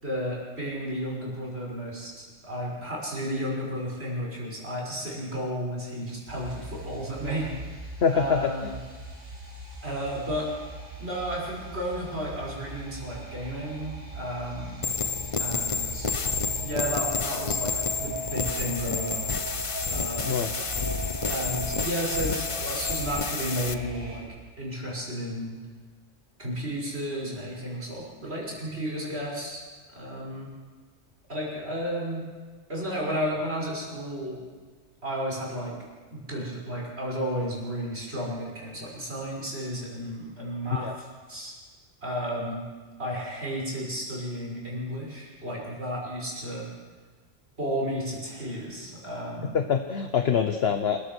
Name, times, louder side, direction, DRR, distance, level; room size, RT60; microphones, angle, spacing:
voice 1, 0.0-8.7 9.8-10.5 11.0-14.8 15.4-16.1 16.6-19.3 19.9-20.4 21.3-24.3 24.6-25.6 26.4-29.6 29.9-30.5 31.3-32.3 32.7-34.4 35.0-35.7 36.1-41.5 42.0-42.6 43.0-46.7 47.6-49.5, equal, 55° right, -4 dB, 6.5 m, -33 dB
sound 1, 6.3-24.2, right 2 dB, 80° right, 4.8 m, -39 dB
voice 2, 8.0-8.7 20.3-20.6 40.7-40.9 49.5-51.0, left 7 dB, 60° left, 6 dB, 1.2 m, -25 dB
sound 2, 14.8-23.7, left 5 dB, 30° left, 0.7 m, -30 dB
27.5 x 15.0 x 6.3 m, 1.5 s
omnidirectional pair, 1.2 m